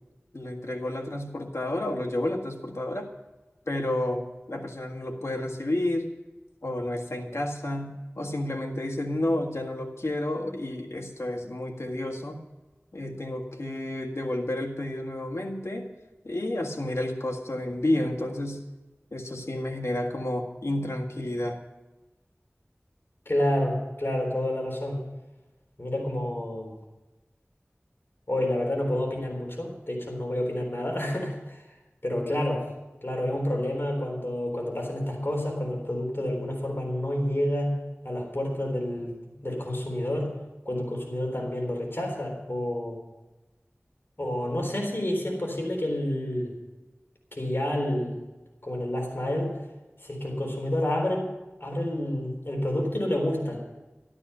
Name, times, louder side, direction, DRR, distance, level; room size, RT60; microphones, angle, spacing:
voice 1, 0.3-3.1 3.7-6.1 6.6-12.4 12.9-15.9 16.2-18.6 19.1-21.6, left 1 dB, 80° left, 2 dB, 1.8 m, -30 dB
voice 2, 23.3-25.0 25.8-26.7 28.3-31.6 32.0-32.7 33.0-37.7 38.0-39.1 39.4-40.3 40.6-43.0 44.2-46.6 47.3-48.2 48.6-49.5 50.0-51.3 51.6-53.6, left 1 dB, 55° left, 1 dB, 3.8 m, -29 dB
12.5 x 12.5 x 5.6 m, 1.1 s
wide cardioid pair, 40°, 5 cm